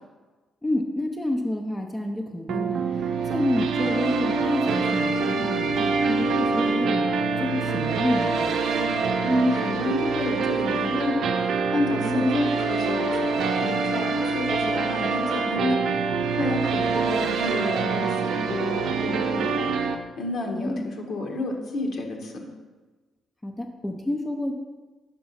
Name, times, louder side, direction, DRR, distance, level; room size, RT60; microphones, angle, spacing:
voice 1, 0.6-2.9 3.2-7.1 7.4-8.6 12.0-12.3 20.5-20.8 23.4-24.5, left 1 dB, 15° left, 3 dB, 0.7 m, -29 dB
sound 1, 2.5-20.0, right 4 dB, 75° right, 0.6 m, -25 dB
voice 2, 9.2-16.1 16.4-22.5, left 2 dB, 65° left, 1 dB, 1.4 m, -29 dB
5.8 x 5.4 x 5.6 m, 1.3 s
cardioid pair, 90°, 0 cm